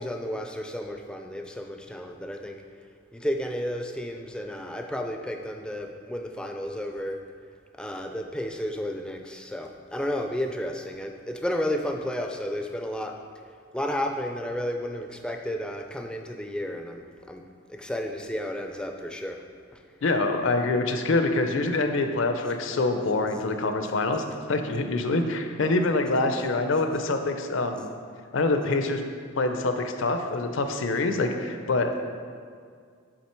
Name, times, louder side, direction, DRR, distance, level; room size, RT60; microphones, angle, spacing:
voice 1, 0.0-2.6 3.1-7.2 7.8-13.2 13.7-17.0 17.3-17.4 17.7-19.4 19.7-19.8 25.6-25.7, equal, 5° left, 3 dB, 0.3 m, -32 dB
voice 2, 20.0-27.9 28.3-29.0 29.4-32.0, left 2 dB, 75° left, 6 dB, 0.5 m, -25 dB
7.4 x 3.6 x 4.4 m, 2.1 s
head